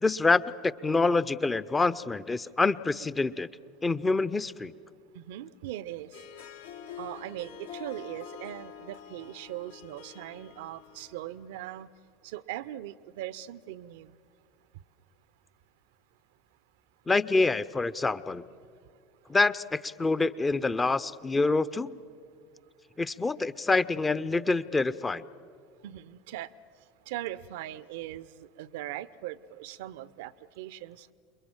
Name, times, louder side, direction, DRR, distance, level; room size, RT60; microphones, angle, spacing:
voice 1, 0.0-3.5 3.8-4.7 17.1-18.4 19.3-22.0 23.0-25.2, left 3 dB, 15° left, 16 dB, 0.7 m, -26 dB
voice 2, 5.1-6.2 7.0-11.9 12.2-14.1 25.8-26.5 27.1-31.1, right 13 dB, 65° right, 19 dB, 0.6 m, -40 dB
Harp, 6.0-11.4, left 7 dB, 75° left, 2.0 m, -46 dB
28.5 x 22.5 x 7.5 m, 2.2 s
figure-of-eight pair, 70°, 0 cm